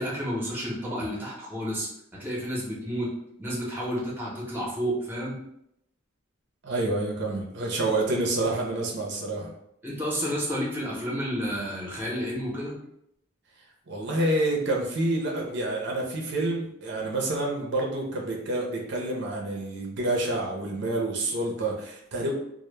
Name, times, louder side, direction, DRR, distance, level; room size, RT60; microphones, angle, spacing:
voice 1, 0.0-1.9 2.2-3.1 3.4-5.4 9.8-12.8, equal, 10° right, -4 dB, 0.6 m, -30 dB
voice 2, 6.6-9.5 13.9-22.3, right 2 dB, 60° right, -1 dB, 0.5 m, -28 dB
2.1 x 2.0 x 3.1 m, 0.77 s
head